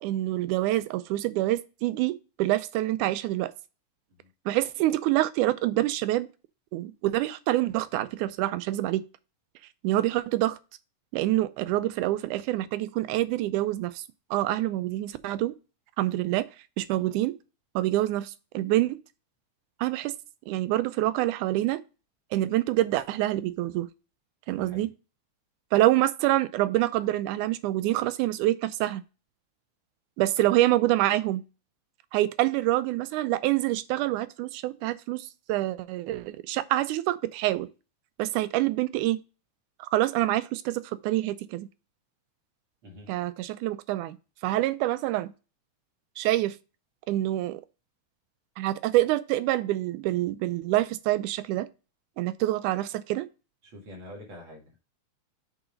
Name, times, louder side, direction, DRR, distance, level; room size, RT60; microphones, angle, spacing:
voice 1, 0.0-3.5 4.5-6.3 6.7-9.0 9.8-10.6 11.1-14.0 14.3-15.5 16.0-16.5 16.8-17.3 17.8-19.0 19.8-20.1 20.5-21.8 22.3-23.9 24.5-24.9 25.7-29.0 30.2-31.4 32.1-37.7 38.2-39.2 39.8-41.7 43.1-44.2 44.4-45.3 46.2-46.6 47.1-47.6 48.6-51.7 52.2-53.3, right 15 dB, 90° right, 2.1 m, -26 dB
voice 2, 24.5-24.9 42.8-43.1 53.6-54.8, left 1 dB, 45° right, 2.4 m, -46 dB
7.2 x 3.9 x 5.1 m
omnidirectional pair, 3.5 m